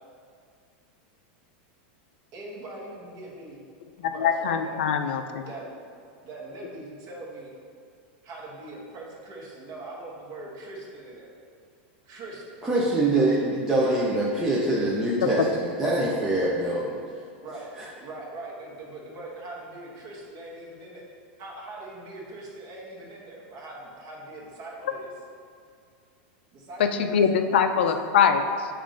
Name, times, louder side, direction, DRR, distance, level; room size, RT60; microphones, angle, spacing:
voice 1, 2.3-3.6 4.0-4.8 5.5-5.7 6.2-7.5 8.2-11.3 12.0-12.6 13.8-14.0 14.8-15.5 17.4-17.7 17.9-21.0 21.4-25.1 26.5-27.9, right 2 dB, 35° right, -4 dB, 1.1 m, -41 dB
voice 2, 4.0-5.4 15.4-15.5 26.8-28.7, left 7 dB, 80° left, 7 dB, 0.4 m, -23 dB
voice 3, 12.6-17.0 17.8-17.9, right 2 dB, 5° right, -7 dB, 0.4 m, -24 dB
7.3 x 2.5 x 5.0 m, 2.2 s
supercardioid pair, 175°, 6 cm